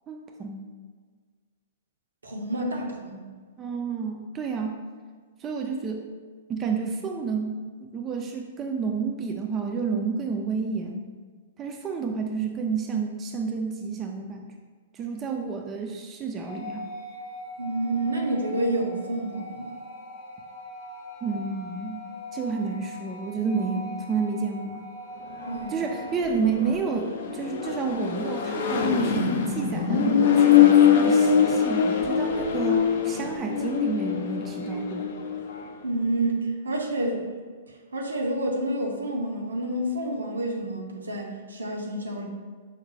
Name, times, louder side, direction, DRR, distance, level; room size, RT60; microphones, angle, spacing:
voice 1, 0.1-0.7 3.6-4.8 5.4-6.1 6.5-7.6 7.9-11.1 11.6-14.5 14.9-16.9 21.2-22.0 22.3-24.9 25.7-35.1, right 5 dB, 25° right, 2 dB, 0.3 m, -30 dB
voice 2, 2.2-3.2 17.6-19.8 25.5-25.8 35.8-37.3 37.9-42.3, right 1 dB, 80° right, 1 dB, 0.6 m, -29 dB
sound 1, 16.4-26.2, left 1 dB, 35° left, 0.7 m, -41 dB
Accelerating revving vroom, 25.3-35.7, left 8 dB, 60° left, 0.4 m, -23 dB
5.0 x 2.1 x 3.1 m, 1.5 s
figure-of-eight pair, 110°, 0 cm